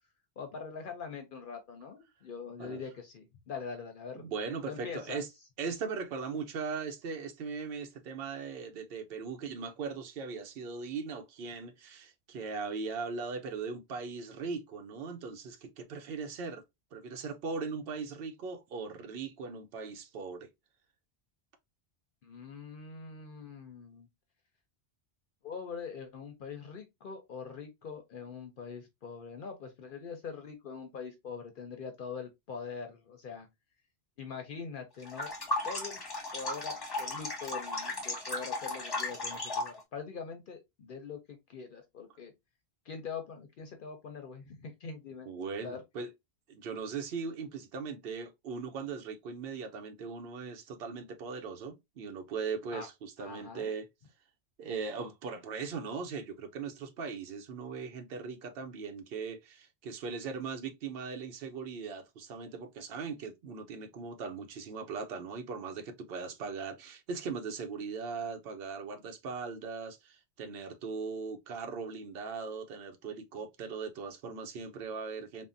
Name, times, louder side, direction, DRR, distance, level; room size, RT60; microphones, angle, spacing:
voice 1, 0.4-4.3 4.7-5.2 22.2-24.1 25.4-33.5 34.2-35.3 35.6-36.0 36.3-42.3 42.9-45.3 45.6-45.8 52.7-52.9 53.2-53.7, left 5 dB, 60° left, 0.7 m, -43 dB
voice 2, 4.1-5.3 5.6-16.6 16.9-20.5 45.3-46.1 46.5-53.9 54.6-75.5, right 5 dB, 65° right, 0.8 m, -39 dB
sound 1, 35.0-39.8, left 2 dB, 25° left, 0.8 m, -35 dB
3.5 x 2.0 x 2.5 m
omnidirectional pair, 1.1 m